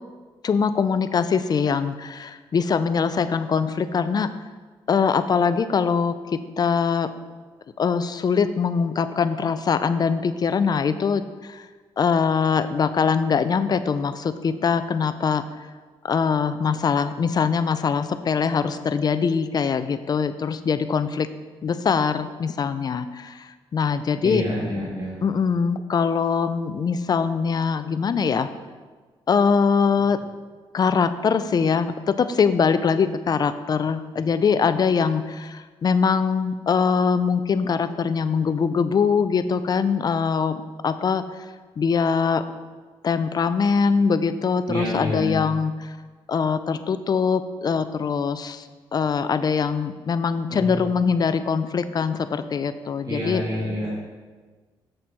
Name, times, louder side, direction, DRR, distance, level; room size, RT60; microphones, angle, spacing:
voice 1, 0.4-4.3 4.9-7.1 7.8-11.6 12.0-15.4 16.0-21.3 21.6-24.4 25.2-28.5 29.3-30.2 30.7-41.2 41.8-42.4 43.0-45.9 46.3-48.6 48.9-53.4, left 6 dB, 45° left, 12 dB, 0.5 m, -22 dB
voice 2, 24.2-25.2 44.7-45.4 50.5-50.8 53.0-53.9, equal, 40° right, -7 dB, 2.4 m, -28 dB
7.7 x 6.6 x 4.2 m, 1.4 s
cardioid pair, 95°, 10 cm